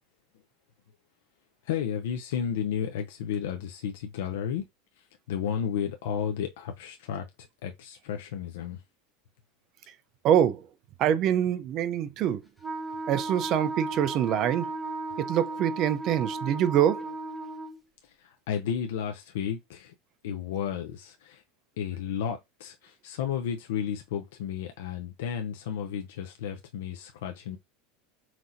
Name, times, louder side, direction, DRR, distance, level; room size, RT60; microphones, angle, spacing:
voice 1, 1.6-4.6 5.3-7.2 7.6-8.8 18.2-19.9 20.2-21.4 21.8-27.6, left 8 dB, 85° left, 0.6 m, -32 dB
voice 2, 10.2-10.6 11.0-12.4 13.1-14.7 15.2-17.0, right 10 dB, 45° right, 0.5 m, -25 dB
Wind instrument woodwind instrument, 12.6-17.8, right 2 dB, ahead, 1.0 m, -35 dB
5.9 x 2.8 x 2.6 m
supercardioid pair, 135°, 0 cm